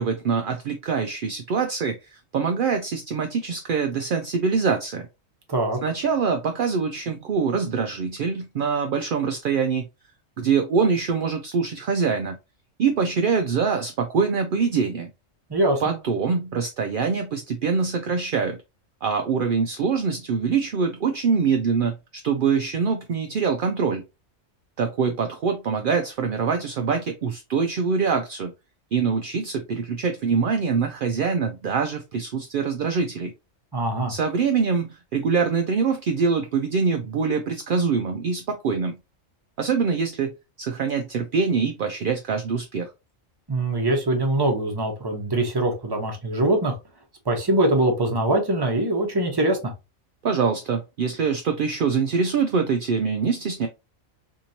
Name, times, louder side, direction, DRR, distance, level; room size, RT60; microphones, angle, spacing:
voice 1, 0.0-5.1 5.8-9.9 10.4-12.4 12.8-15.1 15.8-18.6 19.0-22.0 22.2-24.0 24.8-28.5 28.9-33.3 34.1-38.9 39.6-42.9 50.2-53.7, right 5 dB, 65° right, 0.5 m, -24 dB
voice 2, 5.5-5.8 15.5-16.0 33.7-34.1 43.5-46.8 47.3-49.7, right 1 dB, 20° right, 0.8 m, -23 dB
3.6 x 2.9 x 2.7 m
omnidirectional pair, 1.3 m